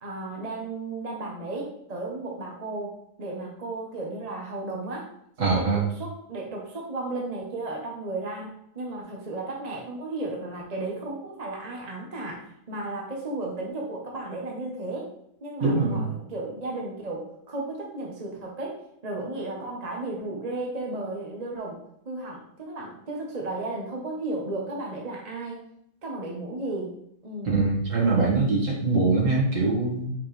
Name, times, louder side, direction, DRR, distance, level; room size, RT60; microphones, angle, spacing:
voice 1, 0.0-5.1 5.4-15.1 15.4-21.8 22.0-25.6 26.0-27.0 27.2-27.6, right 2 dB, 30° right, -1 dB, 0.9 m, -34 dB
voice 2, 5.4-5.8 15.6-16.0 27.4-30.1, right 3 dB, 50° right, -3 dB, 2.1 m, -23 dB
5.9 x 5.8 x 3.3 m, 0.75 s
omnidirectional pair, 1.8 m